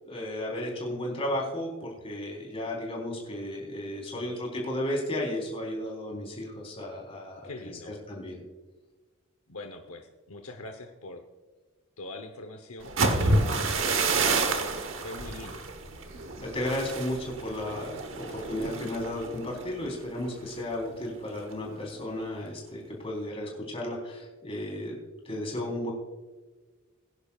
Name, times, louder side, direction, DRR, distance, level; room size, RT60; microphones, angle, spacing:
voice 1, 0.0-8.4 16.4-24.9 25.2-25.9, left 1 dB, 25° left, -2 dB, 3.7 m, -34 dB
voice 2, 7.4-8.0 9.5-11.2 12.0-15.7, left 2 dB, 80° left, 5 dB, 0.9 m, -43 dB
sound 1, 12.8-20.7 21.0-21.3 21.7-22.1, right 3 dB, 60° right, 1.1 m, -29 dB
21.5 x 10.5 x 2.4 m, 1.3 s
head